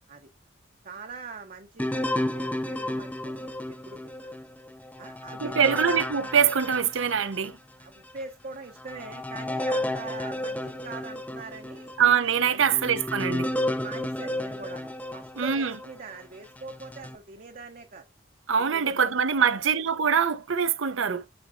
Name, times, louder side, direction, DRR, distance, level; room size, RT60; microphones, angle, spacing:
voice 1, 0.8-4.3 5.0-5.9 7.8-12.0 12.5-12.6 13.5-18.1 18.7-19.6, right 4 dB, 45° right, 0.7 m, -43 dB
sound 1, 1.8-7.5 8.1-8.2 8.8-16.0 16.6-17.2, left 1 dB, 10° left, 0.5 m, -32 dB
voice 2, 5.4-7.5 12.0-13.5 15.4-15.7 18.5-21.2, right 7 dB, 85° right, 0.7 m, -24 dB
11.0 x 4.0 x 2.6 m
head